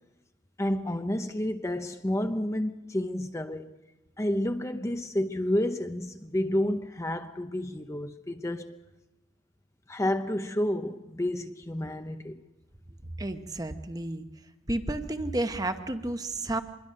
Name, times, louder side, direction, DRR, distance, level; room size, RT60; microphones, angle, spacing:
voice 1, 0.6-3.7 4.2-8.8 9.9-12.4, left 1 dB, 15° left, 0.7 m, -30 dB
voice 2, 13.2-14.3 14.7-16.6, right 2 dB, 20° right, 1.0 m, -31 dB
26.0 x 21.5 x 6.5 m
head